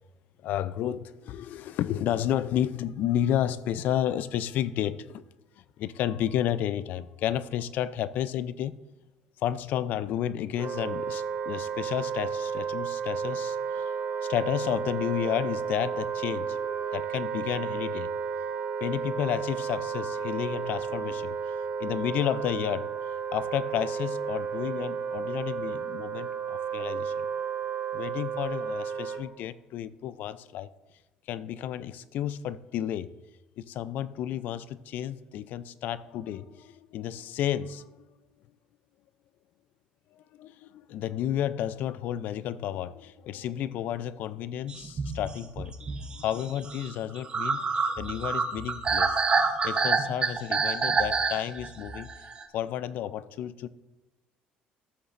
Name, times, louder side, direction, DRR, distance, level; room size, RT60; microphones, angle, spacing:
voice 1, 0.4-5.2 5.6-8.8 9.4-13.9 14.2-18.1 18.8-21.5 21.8-22.9 23.3-27.3 27.9-30.7 31.3-33.1 33.6-38.1 40.1-49.2 49.6-52.1 52.5-53.7, left 11 dB, 65° left, 0.4 m, -32 dB
Wind instrument woodwind instrument, 10.6-29.2, right 6 dB, 55° right, 2.1 m, -32 dB
sound 1, 44.7-52.4, right 4 dB, 30° right, 0.9 m, -28 dB
13.5 x 6.9 x 2.6 m
cardioid pair, 120°, 3 cm